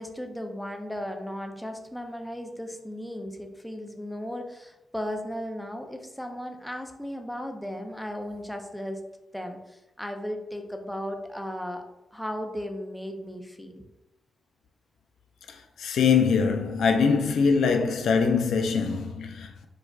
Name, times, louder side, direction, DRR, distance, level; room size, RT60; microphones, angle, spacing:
voice 1, 0.0-9.0 9.3-11.8 12.1-13.8, equal, 5° left, 0.5 m, -36 dB
voice 2, 15.5-19.7, left 5 dB, 85° left, 0.3 m, -23 dB
4.4 x 2.4 x 2.3 m
cardioid pair, 70°, 0 cm